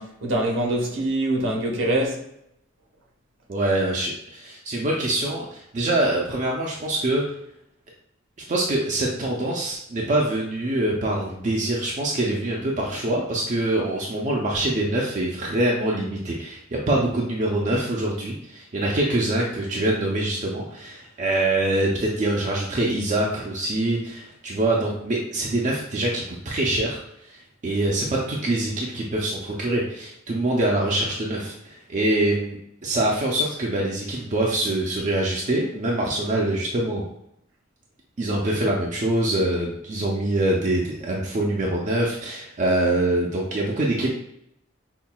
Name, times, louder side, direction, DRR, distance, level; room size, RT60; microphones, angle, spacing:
voice 1, 0.0-2.2, right 1 dB, 70° right, 0.9 m, -24 dB
voice 2, 3.5-7.2 8.5-32.6 32.8-37.0 38.2-44.1, right 1 dB, 40° right, 0.5 m, -24 dB
5.6 x 2.3 x 2.2 m
head